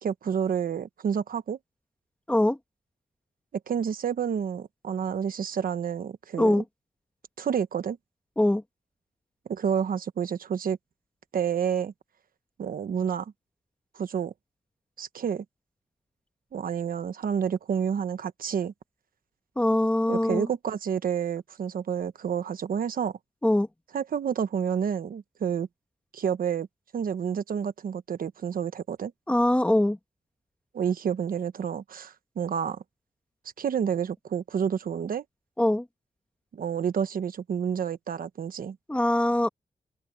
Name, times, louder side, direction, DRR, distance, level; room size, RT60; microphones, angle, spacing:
voice 1, 0.0-1.6 3.7-6.6 7.4-8.0 9.5-10.8 11.3-11.9 12.6-13.3 13.9-14.3 15.0-15.4 16.5-18.7 20.1-23.2 23.9-25.7 26.1-26.7 26.9-29.1 30.7-32.8 33.6-35.2 36.5-38.8, right 7 dB, 75° right, 1.1 m, -29 dB
voice 2, 2.3-2.6 6.4-6.6 8.4-8.6 19.5-20.5 23.4-23.7 29.3-30.0 35.6-35.8 38.9-39.5, left 1 dB, 10° left, 1.7 m, -22 dB
wide cardioid pair, 165°, 15 cm